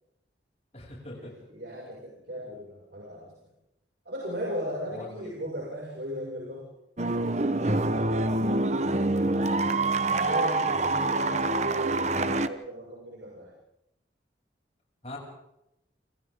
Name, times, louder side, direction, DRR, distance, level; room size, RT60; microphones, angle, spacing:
voice 1, 0.7-1.3 4.9-5.4 9.2-9.6 15.0-15.2, left 1 dB, 35° left, -2 dB, 7.5 m, -42 dB
voice 2, 1.5-3.3 4.0-6.7 10.1-13.5, equal, 65° right, -4 dB, 6.4 m, -36 dB
sound 1, 7.0-12.5, right 2 dB, 40° right, 1.1 m, -26 dB
29.0 x 26.5 x 3.8 m, 0.84 s
head